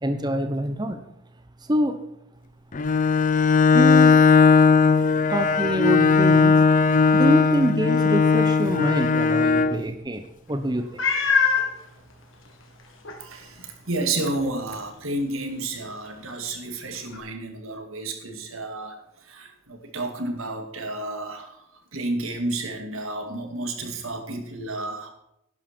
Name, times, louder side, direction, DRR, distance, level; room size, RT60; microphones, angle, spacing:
voice 1, 0.0-1.0 1.6-2.0 3.7-4.2 5.3-6.7 7.1-11.0, right 1 dB, 20° right, 8 dB, 0.9 m, -25 dB
Bowed string instrument, 2.7-9.8, left 5 dB, 40° left, 0.6 m, -18 dB
Meow, 11.0-11.7 12.5-12.6 13.0-13.2 17.1-17.2, left 6 dB, 75° left, 2.4 m, -21 dB
voice 2, 13.2-19.0 19.3-21.6 21.9-25.1, right 2 dB, 90° right, 5 dB, 2.3 m, -31 dB
11.5 x 11.0 x 4.5 m, 0.82 s
head